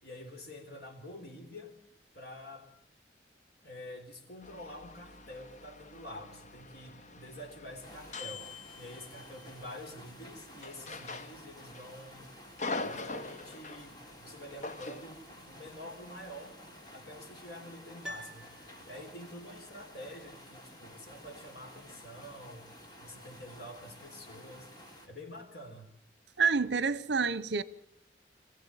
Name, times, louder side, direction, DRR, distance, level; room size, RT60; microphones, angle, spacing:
voice 1, 0.0-1.7 2.1-2.7 3.6-8.5 8.8-12.3 12.8-16.6 16.9-18.5 18.9-22.7 23.0-24.7 25.1-25.9, left 1 dB, 60° left, 4.0 m, -47 dB
sound 1, 4.4-9.4 10.6-11.9 12.2-13.9 14.6-15.1, left 3 dB, 40° left, 1.0 m, -43 dB
sound 2, 7.8-25.1, equal, 25° left, 3.5 m, -52 dB
Piano, 18.0-19.3 19.6-19.7, left 1 dB, 5° right, 2.3 m, -46 dB
voice 2, 26.4-27.6, right 5 dB, 75° right, 0.8 m, -28 dB
24.5 x 15.5 x 9.0 m
head